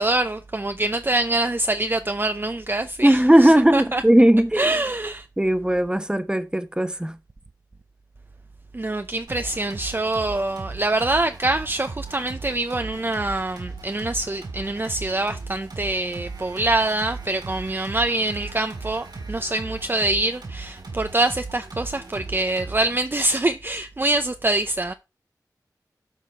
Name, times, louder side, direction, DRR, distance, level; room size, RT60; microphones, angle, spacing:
voice 1, 0.0-4.0 4.5-5.3 8.7-24.9, right 2 dB, 30° right, 0.6 m, -25 dB
voice 2, 3.0-4.6 5.4-7.1, right 1 dB, 10° right, 1.0 m, -17 dB
sound 1, 9.3-23.0, right 3 dB, 80° right, 3.9 m, -37 dB
12.0 x 4.1 x 4.4 m
wide cardioid pair, 65°, 7 cm